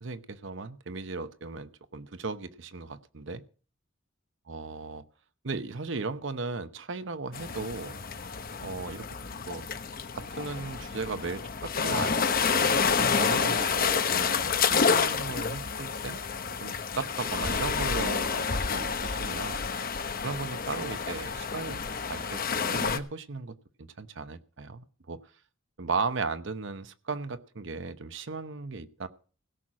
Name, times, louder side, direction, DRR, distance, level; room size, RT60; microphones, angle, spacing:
voice 1, 0.0-3.4 4.5-5.0 5.4-8.0 8.6-9.0 9.5-9.6 10.1-12.2 12.5-12.8 13.2-16.2 16.6-19.6 20.2-21.8 22.1-25.2 25.8-29.1, right 4 dB, 65° right, 12 dB, 0.8 m, -36 dB
sound 1, 7.3-23.0, left 5 dB, 45° left, 1.0 m, -29 dB
16.5 x 6.3 x 7.3 m, 0.40 s
head